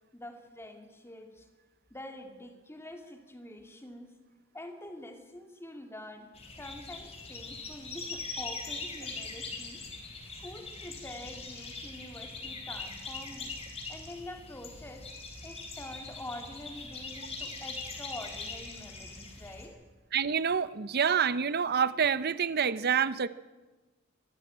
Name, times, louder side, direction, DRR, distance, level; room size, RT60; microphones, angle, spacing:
voice 1, 0.1-1.5 1.9-4.1 4.5-6.3 6.6-9.8 10.4-13.5 13.9-15.1 15.4-19.8, left 1 dB, 10° left, 5 dB, 2.4 m, -46 dB
sound 1, 6.3-19.7, left 3 dB, 30° left, 4.0 m, -42 dB
voice 2, 20.1-23.3, right 7 dB, 50° right, 16 dB, 0.7 m, -27 dB
24.0 x 14.0 x 8.6 m, 1.3 s
head